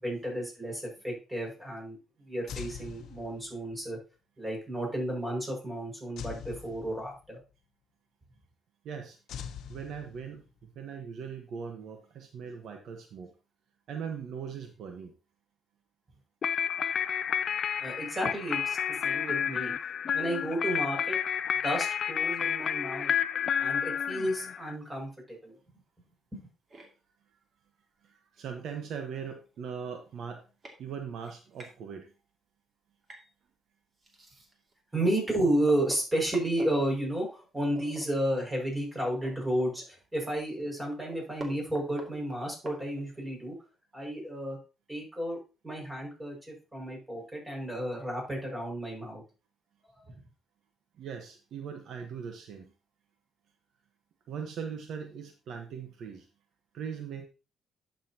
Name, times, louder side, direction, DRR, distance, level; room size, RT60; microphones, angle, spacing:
voice 1, 0.0-2.0 2.2-4.0 4.4-7.4 17.8-18.8 19.0-19.7 20.1-21.2 21.6-23.1 23.6-25.6 26.3-26.4 34.9-43.5 43.9-44.6 44.9-49.2, right 1 dB, 15° right, -1 dB, 5.9 m, -32 dB
sound 1, 2.5-3.7 6.2-7.4 9.3-10.6, left 8 dB, 75° left, 0.8 m, -43 dB
voice 2, 8.8-9.2 9.7-13.3 13.9-15.1 28.1-30.4 30.8-32.1 51.0-52.7 54.3-56.3 56.7-57.3, right 7 dB, 70° right, 4 dB, 1.2 m, -40 dB
sound 2, 16.4-24.7, left 8 dB, 55° left, 0.4 m, -30 dB
sound 3, 26.7-26.9 28.4-28.5 29.0-29.1 29.3-29.6 30.2-30.3 30.6-30.8 31.2-31.7 33.0-33.3 34.0-34.7 35.2-35.3 35.6-36.9 37.7-38.1 38.4-38.5 38.9-40.0 40.4-40.5 40.8-43.3, right 1 dB, 40° right, 2.4 m, -47 dB
11.0 x 6.8 x 2.9 m, 0.32 s
cardioid pair, 90°, 0 cm